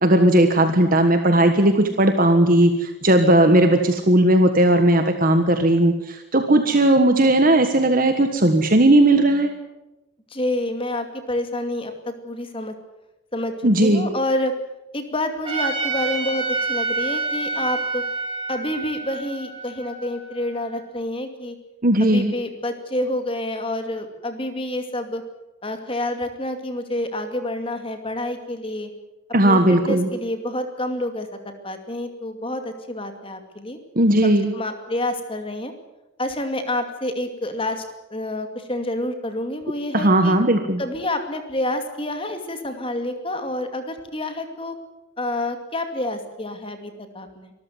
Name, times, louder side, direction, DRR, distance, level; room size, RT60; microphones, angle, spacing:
voice 1, 0.0-9.5 13.6-14.1 21.8-22.3 29.3-30.1 33.9-34.5 39.9-40.8, right 1 dB, 40° right, 7 dB, 1.5 m, -17 dB
voice 2, 10.3-12.7 13.3-13.5 13.8-14.5 14.9-18.0 18.5-21.6 22.0-25.2 25.6-28.9 29.4-33.8 34.2-35.7 36.2-37.8 38.1-40.4 40.8-44.8 45.2-47.5, left 1 dB, 25° left, 7 dB, 2.5 m, -28 dB
Trumpet, 15.4-20.6, right 3 dB, 25° right, 6.0 m, -28 dB
24.5 x 14.0 x 9.5 m, 0.99 s
head